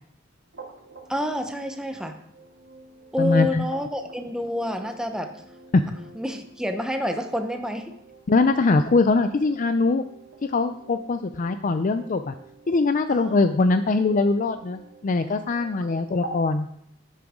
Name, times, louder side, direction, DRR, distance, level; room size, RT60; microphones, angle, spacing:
sound 1, 0.5-16.4, right 2 dB, 75° right, 2.2 m, -47 dB
voice 1, 1.1-2.2 3.1-5.3 6.1-7.9 13.1-13.4, equal, 5° right, 5 dB, 0.9 m, -28 dB
voice 2, 3.2-3.6 5.7-5.8 8.3-10.0 10.4-12.3 12.7-16.7, left 3 dB, 40° left, 10 dB, 0.4 m, -22 dB
11.0 x 9.9 x 3.7 m, 0.73 s
head